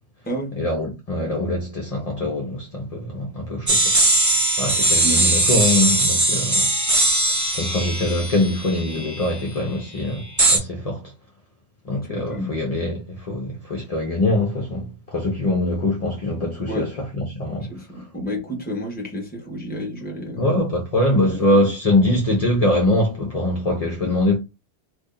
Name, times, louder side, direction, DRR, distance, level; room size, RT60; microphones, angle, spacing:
voice 1, 0.6-3.9 4.6-6.7 7.5-11.1 11.8-18.1 20.4-24.4, left 1 dB, 35° left, 0.8 m, -23 dB
sound 1, 3.7-9.4 10.4-10.6, right 2 dB, 15° right, 0.9 m, -20 dB
voice 2, 5.0-5.4 12.1-12.5 16.7-16.9 17.7-20.5 21.2-22.0, equal, 10° left, 1.1 m, -30 dB
2.9 x 2.7 x 3.8 m
omnidirectional pair, 1.2 m